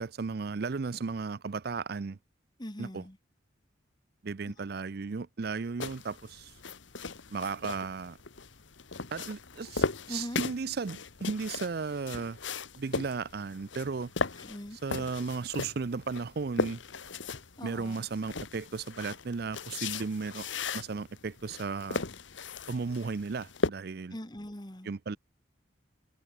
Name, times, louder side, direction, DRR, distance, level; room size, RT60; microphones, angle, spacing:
voice 1, 0.0-2.2 2.8-3.0 4.2-6.5 7.3-8.2 9.1-12.4 12.8-14.1 14.8-16.8 17.6-20.5 20.7-22.0 22.7-24.2 24.9-25.2, right 4 dB, 55° right, 0.5 m, -35 dB
voice 2, 2.6-3.2 4.4-4.5 10.1-10.4 14.4-14.8 17.6-18.1 24.1-24.9, left 1 dB, 20° left, 1.8 m, -41 dB
sound 1, 5.8-23.7, left 4 dB, 75° left, 1.6 m, -37 dB
head